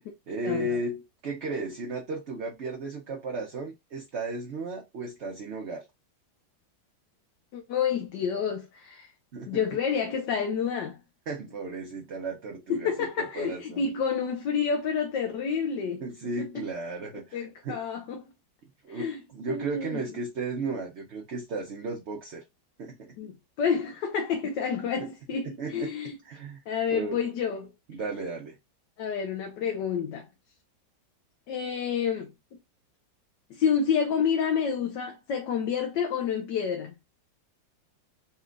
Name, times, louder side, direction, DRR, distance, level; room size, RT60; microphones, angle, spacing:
voice 1, 0.3-5.8 9.3-9.5 11.3-12.9 13.3-13.9 16.0-17.8 18.8-22.4 22.8-23.1 25.0-25.1 25.6-26.0 26.2-26.6 26.9-27.2 27.9-28.6, right 2 dB, 50° right, 0.9 m, -34 dB
voice 2, 7.5-9.1 9.5-11.0 12.7-16.0 16.4-16.5 17.3-18.2 18.9-19.2 19.5-20.0 23.2-26.1 26.7-27.7 29.0-30.3 31.5-32.3 33.5-36.9, left 7 dB, 75° left, 1.4 m, -29 dB
4.2 x 2.4 x 3.8 m
omnidirectional pair, 2.0 m